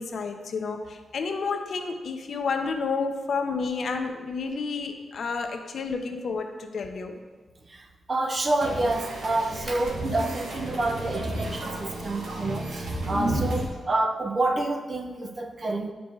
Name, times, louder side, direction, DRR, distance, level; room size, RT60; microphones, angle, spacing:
voice 1, 0.0-7.2, left 4 dB, 60° left, 5 dB, 0.8 m, -30 dB
voice 2, 7.7-15.9, right 2 dB, 35° right, 5 dB, 0.7 m, -28 dB
sound 1, 8.6-13.7, right 1 dB, 75° right, 1.4 m, -32 dB
9.8 x 4.7 x 3.8 m, 1.3 s
cardioid pair, 110°, 0 cm